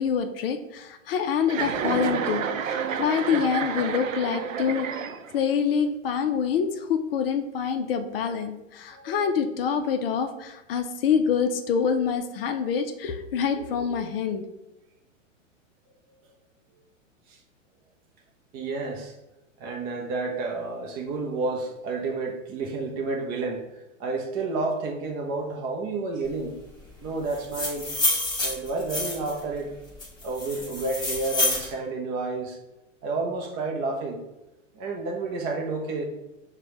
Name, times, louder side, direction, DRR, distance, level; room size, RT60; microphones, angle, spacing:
voice 1, 0.0-4.9 5.3-14.5, left 7 dB, 50° left, 7 dB, 0.4 m, -26 dB
Chuckle chortle, 1.4-5.5, right 7 dB, 80° right, 0.5 m, -30 dB
voice 2, 8.9-9.3 17.3-17.4 18.5-19.1 19.6-23.7 24.0-26.6 27.0-29.7 30.2-32.6 33.0-34.2 34.8-36.0, right 3 dB, 25° right, 2 dB, 0.5 m, -30 dB
sound 1, 27.3-29.4 30.0-31.7, left 2 dB, 10° left, 1.2 m, -28 dB
5.9 x 2.2 x 2.9 m, 0.95 s
hypercardioid pair, 110°, 39 cm